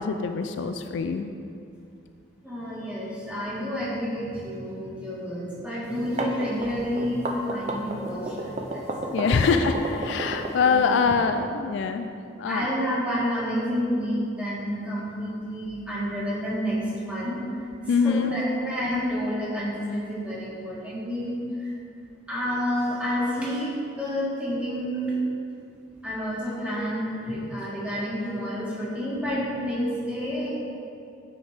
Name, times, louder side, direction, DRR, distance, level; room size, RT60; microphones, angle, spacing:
voice 1, 0.0-1.3 9.1-12.1 12.4-12.7 17.9-18.4, left 5 dB, 65° left, 7 dB, 0.3 m, -24 dB
voice 2, 2.4-9.6 10.7-11.1 12.4-21.8 22.3-25.2 26.0-30.5, equal, 5° right, -8 dB, 1.7 m, -29 dB
sound 1, 5.9-11.1, right 2 dB, 35° right, 0.5 m, -32 dB
8.6 x 5.2 x 3.5 m, 2.5 s
head